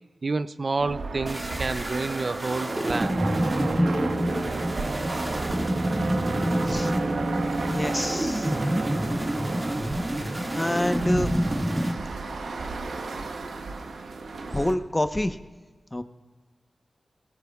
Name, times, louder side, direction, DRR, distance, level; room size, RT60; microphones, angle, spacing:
voice 1, 0.2-3.2 8.0-8.1, right 3 dB, 55° right, 13 dB, 0.5 m, -29 dB
sound 1, 0.8-14.7, right 3 dB, 85° right, 0.9 m, -32 dB
sound 2, 1.3-11.9, equal, 30° right, 2.0 m, -28 dB
voice 2, 7.7-8.5 10.5-11.3 14.5-15.4 15.9-16.0, left 1 dB, 20° left, 8 dB, 0.9 m, -27 dB
20.5 x 17.5 x 2.4 m, 1.3 s
cardioid pair, 40°, 0 cm